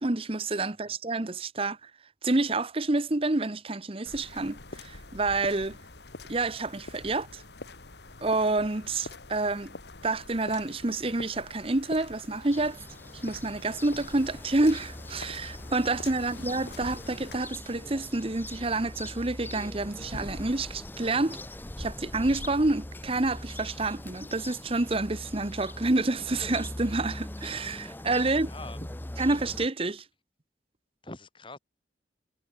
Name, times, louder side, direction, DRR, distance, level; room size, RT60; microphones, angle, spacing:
voice 1, 0.0-1.9 2.2-5.8 6.3-7.4 8.2-9.7 10.0-12.8 13.1-21.4 21.8-28.5 29.2-30.0, right 2 dB, 30° right, 0.9 m, -28 dB
sound 1, 4.0-17.4, left 2 dB, 70° left, 2.2 m, -45 dB
sound 2, 12.5-29.7, left 1 dB, 10° left, 0.6 m, -41 dB
voice 2, 16.1-16.4 28.3-28.9 31.0-31.6, left 2 dB, 30° left, 5.7 m, -45 dB
head